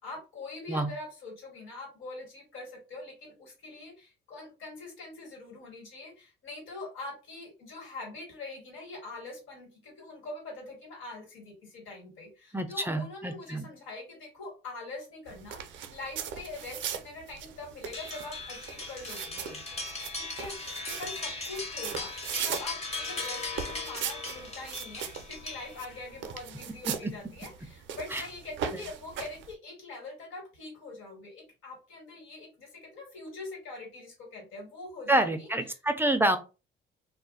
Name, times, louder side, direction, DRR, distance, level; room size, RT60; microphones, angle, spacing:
voice 1, 0.0-19.6 19.9-20.5 20.9-22.1 22.4-35.5, left 2 dB, 90° left, 0 dB, 1.7 m, -43 dB
voice 2, 12.5-13.7 28.1-28.2 35.1-36.4, right 1 dB, 10° right, 7 dB, 0.4 m, -27 dB
sound 1, 15.3-29.5, right 8 dB, 70° right, 0.5 m, -40 dB
sound 2, 17.9-26.1, left 3 dB, 30° left, 1.0 m, -38 dB
2.5 x 2.1 x 3.8 m, 0.31 s
cardioid pair, 90°, 20 cm